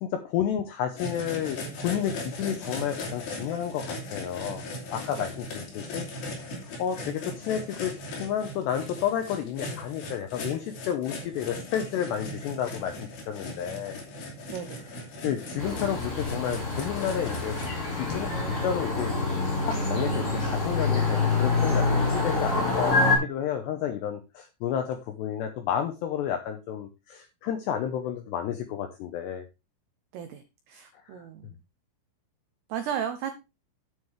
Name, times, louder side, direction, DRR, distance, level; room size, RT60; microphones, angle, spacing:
voice 1, 0.0-4.6 4.9-6.1 6.8-14.0 14.8-14.9 15.2-17.6 17.9-19.2 19.6-29.5 31.1-31.3, left 9 dB, 85° left, 7 dB, 2.5 m, -31 dB
sound 1, 1.0-17.7, left 1 dB, 50° left, 4.3 m, -38 dB
voice 2, 14.5-14.8 30.1-31.5 32.7-33.3, right 8 dB, 80° right, 8 dB, 2.4 m, -34 dB
sound 2, 15.6-23.2, left 3 dB, 30° left, 5.2 m, -26 dB
9.6 x 9.0 x 3.4 m, 0.26 s
omnidirectional pair, 5.9 m